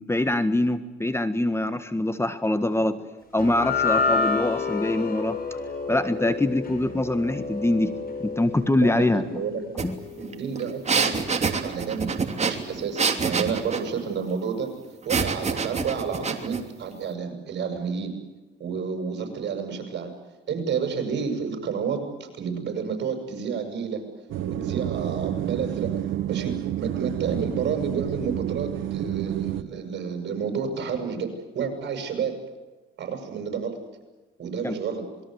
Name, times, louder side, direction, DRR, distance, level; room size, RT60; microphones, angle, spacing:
voice 1, 0.0-3.0 3.3-5.4 5.9-7.9 8.2-9.4 9.8-10.0 34.6-34.8, left 1 dB, 10° left, 11 dB, 1.6 m, -24 dB
sound 1, 3.4-9.8, left 4 dB, 50° left, 7.1 m, -29 dB
voice 2, 8.7-9.8 10.2-12.1 12.4-14.7 15.1-18.1 18.6-20.1 20.5-24.0 24.4-25.9 26.3-32.4 33.0-33.8 34.4-35.0, right 6 dB, 60° right, 5 dB, 7.5 m, -30 dB
sound 2, 9.8-9.9 10.2-13.9 15.1-16.6, right 5 dB, 35° right, 3.1 m, -26 dB
sound 3, 24.3-29.6, right 11 dB, 85° right, 1.5 m, -29 dB
27.0 x 21.5 x 8.2 m, 1.2 s
cardioid pair, 90°, 20 cm